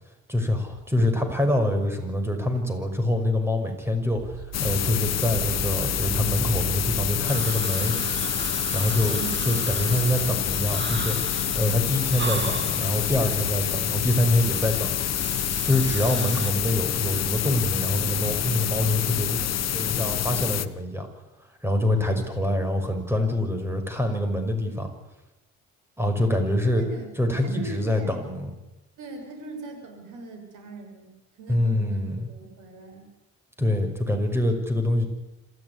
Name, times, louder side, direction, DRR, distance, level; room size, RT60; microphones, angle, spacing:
voice 1, 0.3-8.0 8.7-9.2 9.4-14.9 15.6-21.1 21.6-24.9 26.0-26.8 27.2-28.5 31.5-32.3 33.6-35.1, left 1 dB, 10° right, 6 dB, 6.0 m, -25 dB
sound 1, 4.1-16.4, right 6 dB, 55° right, 3.2 m, -39 dB
sound 2, 4.5-20.7, left 11 dB, 60° left, 1.2 m, -27 dB
sound 3, 7.3-16.5, right 5 dB, 35° right, 1.9 m, -37 dB
voice 2, 9.1-9.4 26.7-27.1 27.4-28.2 29.0-33.1, right 3 dB, 85° right, 4 dB, 6.7 m, -40 dB
26.5 x 14.5 x 9.9 m, 1.0 s
cardioid pair, 90°, 30 cm